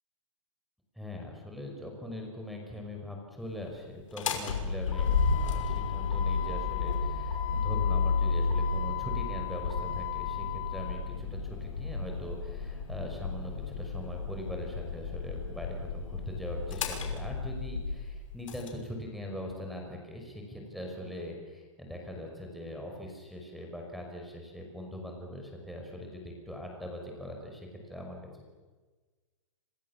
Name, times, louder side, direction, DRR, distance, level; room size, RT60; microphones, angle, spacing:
voice 1, 1.0-28.2, left 1 dB, ahead, 0 dB, 5.5 m, -41 dB
Motor vehicle (road), 4.0-18.7, left 5 dB, 80° left, 5.9 m, -32 dB
28.5 x 28.0 x 7.3 m, 1.3 s
hypercardioid pair, 165°, 16 cm